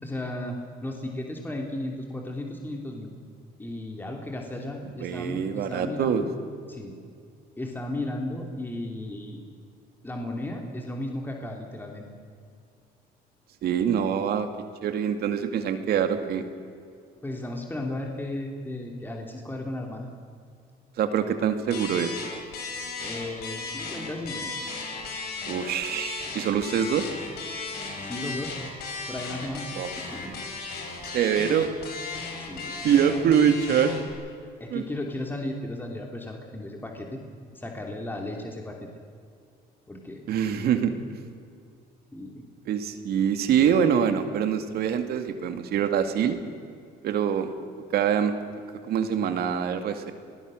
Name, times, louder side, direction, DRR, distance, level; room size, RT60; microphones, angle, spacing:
voice 1, 0.0-3.1 3.6-6.3 6.7-6.9 7.6-9.4 10.0-12.1 17.2-20.1 23.0-24.5 28.0-28.6 29.1-29.7 29.9-30.4 32.4-33.2 34.6-37.2 37.5-38.9 39.9-40.2 42.1-42.4, left 1 dB, 10° left, 1 dB, 3.0 m, -35 dB
voice 2, 5.0-6.3 13.6-14.5 14.8-16.5 21.0-22.1 25.5-27.1 29.7-29.9 31.1-31.7 32.8-33.9 34.7-34.8 40.3-40.9 42.7-46.4 47.0-47.5 47.9-48.4 48.9-50.1, right 8 dB, 70° right, 8 dB, 2.2 m, -24 dB
sound 1, 21.7-34.1, left 4 dB, 70° left, 5.5 m, -36 dB
27.5 x 19.5 x 6.5 m, 2.3 s
cardioid pair, 110°, 17 cm